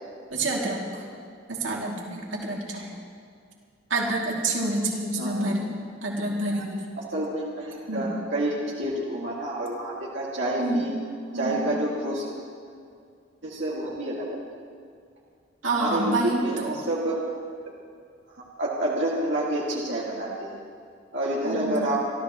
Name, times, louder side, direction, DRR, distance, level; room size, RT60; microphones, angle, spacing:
voice 1, 0.3-1.1 1.5-2.9 3.9-5.7 6.0-6.8 7.9-8.1 10.6-10.8 11.3-11.7 15.6-16.8 21.4-21.9, right 2 dB, 90° right, -2 dB, 2.7 m, -28 dB
voice 2, 7.0-10.9 11.3-12.3 13.4-14.4 15.7-17.2 18.3-20.6 21.1-22.0, right 1 dB, 75° right, -6 dB, 2.3 m, -29 dB
27.0 x 13.5 x 3.1 m, 2.3 s
head